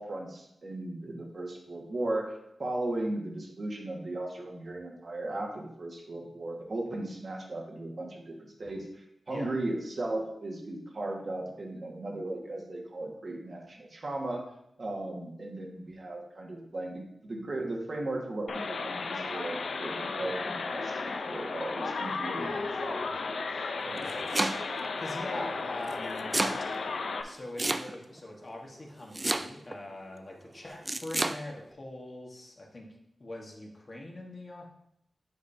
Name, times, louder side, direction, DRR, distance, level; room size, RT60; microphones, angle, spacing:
voice 1, 0.0-2.3 2.6-14.5 14.8-23.4 23.7-24.4 25.3-25.4, right 2 dB, 55° right, 0 dB, 1.5 m, -37 dB
sound 1, 18.5-27.2, left 4 dB, 85° left, 0.5 m, -34 dB
voice 2, 22.4-23.1 23.8-24.2 25.0-26.3 27.2-32.9 33.2-34.6, left 1 dB, 40° left, -2 dB, 1.4 m, -43 dB
Domestic sounds home sounds, 23.8-24.9 25.9-26.6 27.6-28.2 29.1-29.8 30.9-31.4, right 2 dB, 25° right, 0.3 m, -30 dB
9.4 x 5.2 x 2.7 m, 0.76 s
wide cardioid pair, 90°, 0 cm